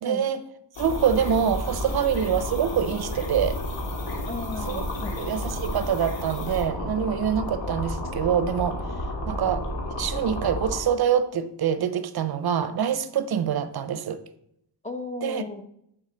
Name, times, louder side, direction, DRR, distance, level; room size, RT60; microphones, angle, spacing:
voice 1, 0.0-0.4 0.8-3.6 4.7-4.8 5.2-8.8 9.3-9.7 10.0-14.2 15.2-15.4, right 8 dB, 60° right, 12 dB, 0.7 m, -25 dB
sound 1, 0.7-6.6, left 3 dB, 90° left, 2.8 m, -45 dB
sound 2, 0.8-10.8, left 1 dB, 70° left, 2.1 m, -31 dB
voice 2, 4.3-5.2 14.8-15.6, left 3 dB, 15° left, 7 dB, 0.8 m, -35 dB
7.1 x 5.0 x 7.0 m, 0.74 s
wide cardioid pair, 160°, 44 cm